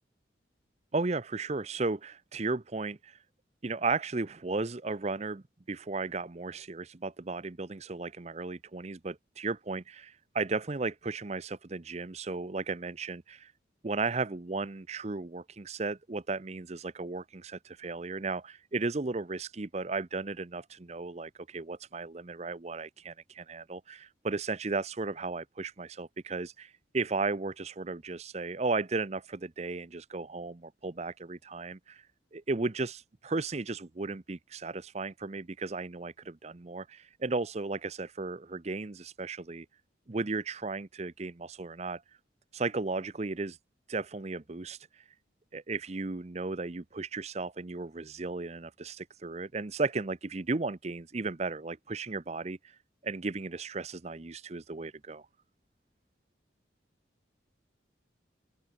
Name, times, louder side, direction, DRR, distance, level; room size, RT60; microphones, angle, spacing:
voice 1, 0.9-3.2 3.6-13.5 13.8-32.1 32.3-39.7 40.1-42.0 42.5-43.6 43.9-45.1 45.5-55.3, right 3 dB, 35° right, 0.7 m, -35 dB
open air
head